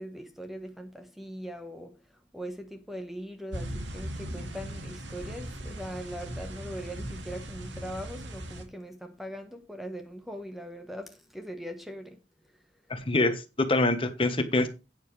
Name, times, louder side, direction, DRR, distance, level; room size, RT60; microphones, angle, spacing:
voice 1, 0.0-2.0 2.3-12.2, equal, ahead, 1.1 m, -40 dB
sound 1, 3.5-8.6, right 1 dB, 85° right, 2.4 m, -39 dB
voice 2, 12.9-14.7, left 2 dB, 30° left, 1.3 m, -25 dB
12.0 x 9.4 x 3.3 m
head